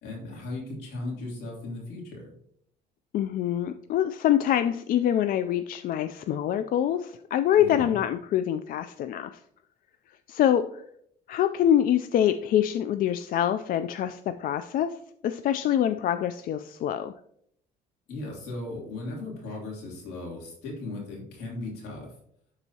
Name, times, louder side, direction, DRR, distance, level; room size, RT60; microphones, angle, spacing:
voice 1, 0.0-2.3 7.5-8.0 18.1-22.1, left 2 dB, 80° left, -2 dB, 3.0 m, -37 dB
voice 2, 3.1-9.4 10.3-10.8 11.3-15.0 15.2-17.1, left 10 dB, 55° left, 10 dB, 0.4 m, -25 dB
11.5 x 4.0 x 2.8 m, 0.69 s
cardioid pair, 110°, 17 cm